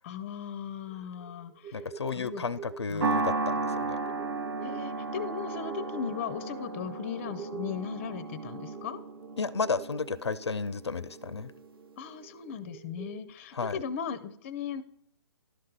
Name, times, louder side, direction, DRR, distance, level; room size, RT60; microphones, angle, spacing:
voice 1, 0.0-2.5 2.9-3.0 4.6-9.0 12.0-14.8, left 7 dB, 30° left, 16 dB, 0.5 m, -37 dB
sound 1, 0.9-13.3, right 5 dB, 20° right, 0.6 m, -47 dB
voice 2, 1.7-4.0 9.4-11.5 13.5-13.8, left 4 dB, 80° left, 19 dB, 0.4 m, -32 dB
sound 2, 3.0-11.5, right 3 dB, 55° right, 0.7 m, -34 dB
11.5 x 6.5 x 3.8 m, 0.76 s
figure-of-eight pair, 135°, 14 cm